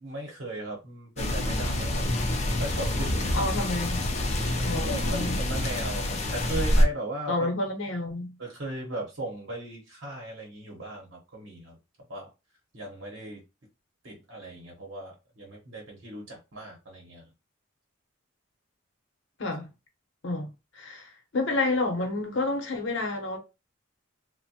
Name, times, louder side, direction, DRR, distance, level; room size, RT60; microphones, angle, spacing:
voice 1, 0.0-3.4 4.7-7.5 8.4-11.8 12.1-12.3 12.7-13.4 14.0-17.3, right 1 dB, 60° right, 0.8 m, -37 dB
sound 1, 1.2-6.9, left 1 dB, 30° left, 0.4 m, -26 dB
voice 2, 3.3-4.0 4.6-5.4 7.3-8.3 19.4-19.7 20.2-20.5 20.7-23.4, left 2 dB, 60° left, 0.8 m, -29 dB
3.0 x 2.1 x 2.7 m
head